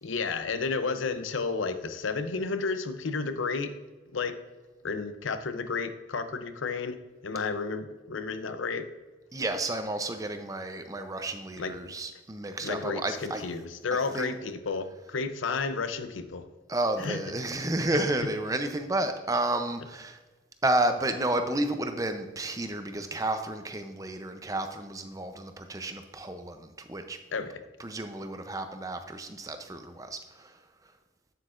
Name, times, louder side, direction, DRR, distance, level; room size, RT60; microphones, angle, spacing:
voice 1, 0.0-3.8 4.1-4.3 4.8-7.0 7.2-8.8 11.6-11.9 12.6-16.5 17.0-17.2 17.9-18.0 27.3-27.6, left 4 dB, 85° left, 10 dB, 0.6 m, -32 dB
voice 2, 9.3-13.4 14.1-14.3 16.7-20.2 20.6-27.2 27.8-30.5, right 2 dB, 20° right, 7 dB, 0.6 m, -31 dB
8.6 x 7.8 x 2.5 m, 1.2 s
head